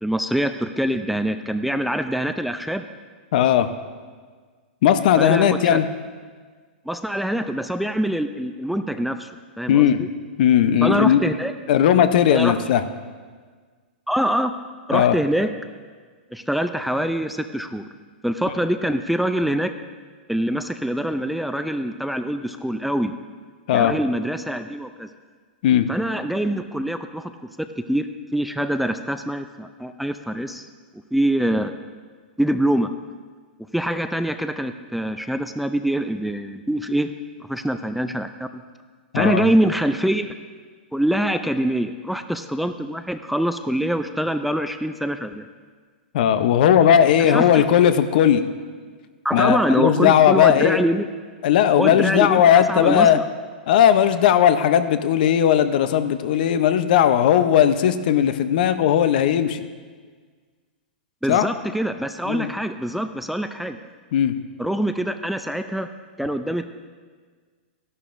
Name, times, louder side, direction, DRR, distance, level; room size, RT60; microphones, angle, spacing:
voice 1, 0.0-2.9 5.2-5.8 6.9-9.3 9.6-10.1 10.8-11.5 12.3-12.6 14.1-14.5 14.9-15.5 16.3-17.9 18.2-19.7 20.3-23.1 23.7-25.1 25.9-27.3 27.6-30.7 31.1-31.7 32.4-32.9 33.7-37.1 37.5-38.6 39.1-40.3 40.9-45.5 47.2-47.6 49.2-51.1 51.7-53.2 61.2-63.8 64.6-65.9 66.2-66.7, right 1 dB, ahead, 8 dB, 0.3 m, -24 dB
voice 2, 3.3-3.7 4.8-5.9 9.7-10.0 10.4-11.2 11.7-12.8 14.9-15.2 23.7-23.9 25.6-25.9 39.1-39.5 46.1-48.4 49.3-50.8 51.4-53.2 53.7-59.6 61.3-61.4 62.3-62.5 64.1-64.3, left 9 dB, 60° left, 11 dB, 0.7 m, -17 dB
13.0 x 11.0 x 2.6 m, 1.6 s
hypercardioid pair, 130°, 5 cm